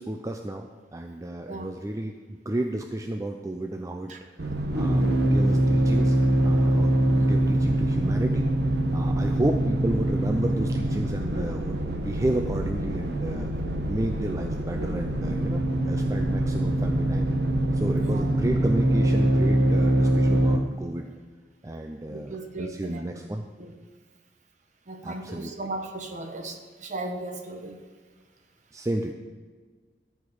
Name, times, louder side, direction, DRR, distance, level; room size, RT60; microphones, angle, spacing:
voice 1, 0.0-4.1 4.7-8.5 8.9-13.5 13.9-17.3 17.7-21.1 21.6-23.5 25.0-25.5 28.7-29.1, right 1 dB, 20° right, 4 dB, 0.4 m, -32 dB
sound 1, 4.4-20.6, right 1 dB, 65° right, 1.3 m, -24 dB
voice 2, 22.1-23.0 23.6-23.7 24.9-27.8, right 2 dB, 40° right, 5 dB, 1.1 m, -37 dB
14.0 x 5.0 x 7.1 m, 1.5 s
head